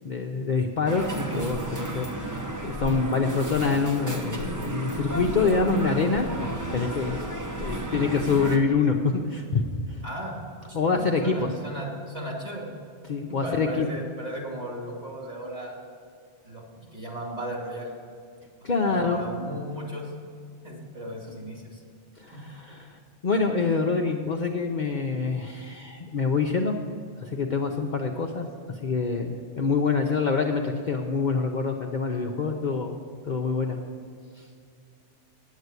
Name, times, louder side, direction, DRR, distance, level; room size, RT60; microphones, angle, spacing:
voice 1, 0.0-7.3 7.6-10.0 10.7-11.5 13.1-13.9 18.6-19.2 22.2-26.8 27.2-33.0 33.2-33.8 34.4-34.5, left 4 dB, 50° left, 1 dB, 0.7 m, -26 dB
sound 1, 0.9-8.6, right 2 dB, 20° right, 0.8 m, -32 dB
voice 2, 10.0-10.4 10.7-12.8 13.3-15.8 16.4-17.9 18.9-20.0 20.6-21.8 22.3-22.4, right 1 dB, 35° right, -2 dB, 2.6 m, -35 dB
9.4 x 8.2 x 8.1 m, 2.3 s
omnidirectional pair, 1.2 m